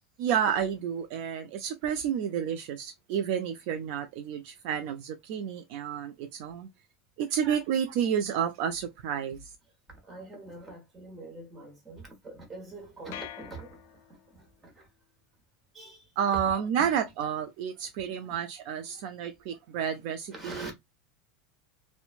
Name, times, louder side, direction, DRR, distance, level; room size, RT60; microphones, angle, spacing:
voice 1, 0.2-6.7 7.2-9.5 16.2-20.7, right 8 dB, 55° right, 0.4 m, -30 dB
voice 2, 9.9-14.9 15.7-16.1 16.8-16.9 18.2-18.4 18.9-19.0 20.3-20.7, right 2 dB, 15° right, 1.1 m, -45 dB
sound 1, 13.1-14.5, left 12 dB, 65° left, 0.4 m, -45 dB
3.0 x 2.1 x 2.4 m
supercardioid pair, 150°, 0 cm